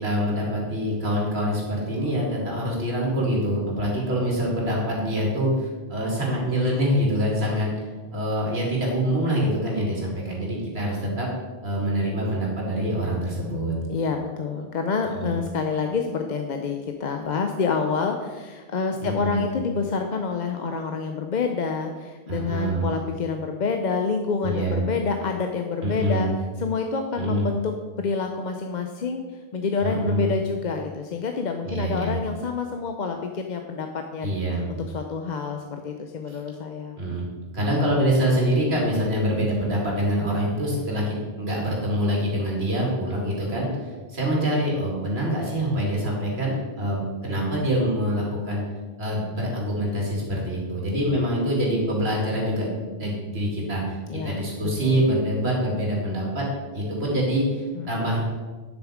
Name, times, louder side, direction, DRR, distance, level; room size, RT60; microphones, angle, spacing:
voice 1, 0.0-11.3 11.6-13.8 15.1-15.4 19.0-19.5 22.3-22.9 24.4-24.8 25.8-26.3 27.2-27.5 29.8-30.3 31.6-32.2 34.2-34.7 36.3-36.4 37.0-37.3 37.5-48.6 49.0-54.0 54.2-56.5 56.7-58.2, equal, 80° right, -3 dB, 2.7 m, -25 dB
voice 2, 13.9-26.3 26.6-29.2 29.5-34.3 34.7-37.0 54.1-55.1 57.7-58.0, left 5 dB, 50° left, 4 dB, 0.7 m, -28 dB
9.9 x 6.9 x 5.0 m, 1.4 s
omnidirectional pair, 1.1 m